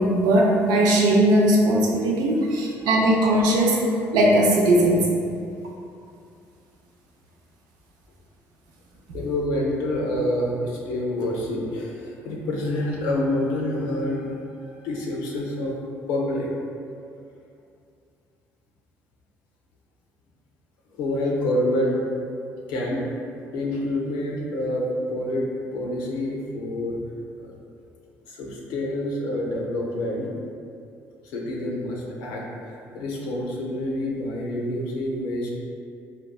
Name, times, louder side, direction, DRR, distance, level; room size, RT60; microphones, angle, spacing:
voice 1, 0.0-3.9 4.1-5.1, right 1 dB, 80° right, -1 dB, 0.5 m, -19 dB
voice 2, 9.1-15.8 16.1-16.5 20.9-22.0 22.7-23.0 23.5-25.5 25.7-27.0 27.4-27.5 28.3-30.3 31.2-35.5, left 1 dB, 85° left, -2 dB, 0.5 m, -27 dB
3.6 x 2.2 x 2.3 m, 2.4 s
supercardioid pair, 65°, 7 cm